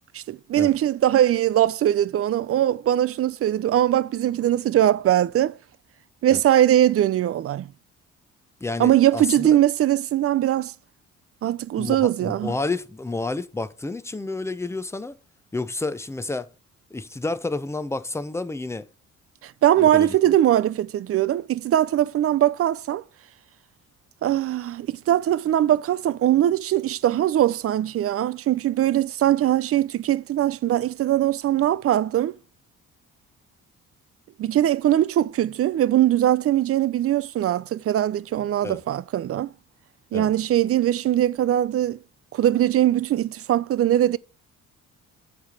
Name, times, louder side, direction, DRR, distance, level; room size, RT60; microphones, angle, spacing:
voice 1, 0.1-5.5 6.2-7.7 8.8-10.7 11.4-12.5 19.4-23.0 24.2-32.4 34.4-39.5 40.1-42.0 42.3-44.2, right 12 dB, 50° right, 0.4 m, -21 dB
voice 2, 8.6-9.6 11.8-15.1 15.5-16.5 16.9-18.9 19.8-20.2 38.6-38.8 40.1-40.3, left 3 dB, 10° left, 0.6 m, -30 dB
8.7 x 3.4 x 5.4 m
cardioid pair, 90°, 30 cm